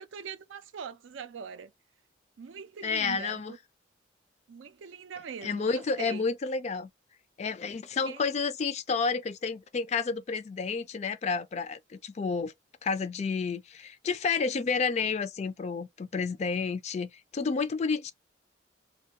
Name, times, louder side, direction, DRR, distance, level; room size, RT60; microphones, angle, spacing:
voice 1, 0.0-1.7 2.4-3.6 4.5-6.2 8.0-8.3, right 6 dB, 85° right, 0.4 m, -42 dB
voice 2, 2.8-3.6 5.4-6.9 7.4-12.5 12.8-18.1, left 5 dB, 35° left, 0.3 m, -30 dB
2.5 x 2.2 x 2.8 m
head